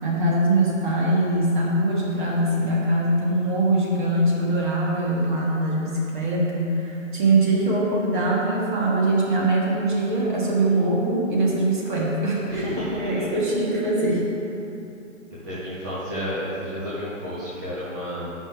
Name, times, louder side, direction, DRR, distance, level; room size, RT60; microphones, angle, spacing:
voice 1, 0.0-14.3, right 2 dB, 40° right, -4 dB, 1.4 m, -22 dB
voice 2, 12.5-13.3 15.4-18.3, equal, 15° right, -10 dB, 0.5 m, -31 dB
8.7 x 5.5 x 3.3 m, 2.8 s
figure-of-eight pair, 140°, 39 cm